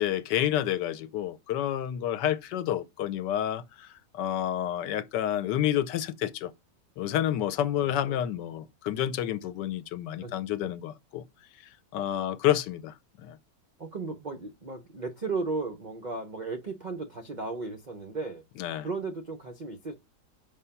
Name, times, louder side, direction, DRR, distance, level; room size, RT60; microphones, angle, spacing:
voice 1, 0.0-6.5 7.0-11.2 11.9-12.9 13.2-13.4 18.6-18.9, left 11 dB, 75° left, 1.2 m, -29 dB
voice 2, 7.8-8.2 10.2-10.3 13.8-18.4 18.8-19.9, right 3 dB, 75° right, 0.4 m, -35 dB
5.6 x 4.9 x 5.6 m
omnidirectional pair, 2.0 m